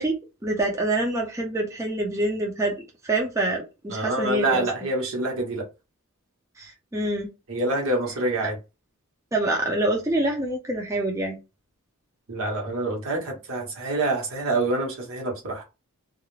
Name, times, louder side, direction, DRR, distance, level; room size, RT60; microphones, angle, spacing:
voice 1, 0.0-2.8 3.0-4.7 6.6-7.3 9.3-11.4, right 2 dB, 15° right, 0.4 m, -26 dB
voice 2, 3.9-5.6 7.5-8.6 12.3-15.6, right 2 dB, 65° right, 1.0 m, -26 dB
2.3 x 2.0 x 3.0 m
head